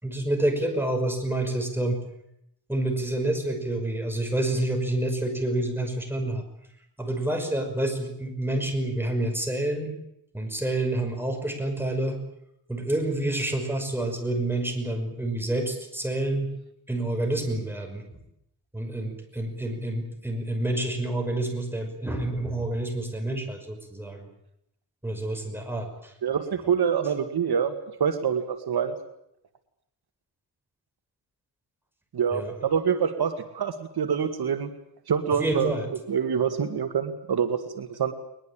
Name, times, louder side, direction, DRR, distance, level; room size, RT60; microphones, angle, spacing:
voice 1, 0.0-2.0 2.7-6.4 7.0-9.9 10.3-12.2 12.7-16.5 16.9-18.0 18.7-24.3 25.0-26.1 32.3-32.5 35.4-35.9, right 1 dB, 5° right, 3 dB, 5.7 m, -28 dB
voice 2, 26.2-28.9 32.1-34.7 35.1-38.1, right 7 dB, 70° right, 7 dB, 2.1 m, -26 dB
21.5 x 21.5 x 8.9 m, 0.76 s
wide cardioid pair, 140°, 40 cm